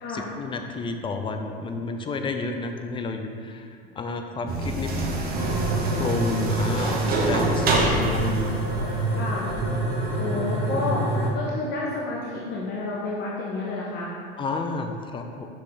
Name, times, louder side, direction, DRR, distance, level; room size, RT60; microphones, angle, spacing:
voice 1, 0.1-4.9 6.0-8.5 8.8-8.9 14.4-15.5, left 3 dB, 15° left, 5 dB, 0.5 m, -31 dB
sound 1, 4.5-9.6, right 2 dB, 30° right, 1.2 m, -26 dB
sound 2, 5.3-11.3, right 2 dB, 80° right, 1.6 m, -27 dB
voice 2, 9.1-9.4 10.2-11.0 11.3-14.1, left 3 dB, 35° left, -4 dB, 1.0 m, -30 dB
6.1 x 5.7 x 3.3 m, 2.3 s
hypercardioid pair, 105°, 31 cm